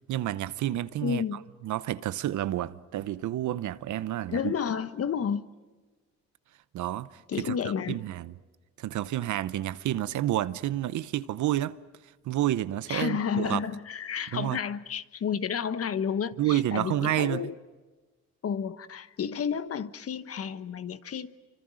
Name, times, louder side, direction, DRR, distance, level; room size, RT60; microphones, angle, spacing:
voice 1, 0.1-1.2 1.6-4.5 6.7-7.6 7.9-8.3 8.8-11.8 12.2-13.7 14.3-14.6 16.4-17.5, right 13 dB, 75° right, 0.9 m, -29 dB
voice 2, 1.0-1.4 4.3-5.5 7.3-8.0 12.9-17.5 18.4-21.3, left 7 dB, 50° left, 1.2 m, -31 dB
29.0 x 25.0 x 6.4 m
cardioid pair, 90°, 30 cm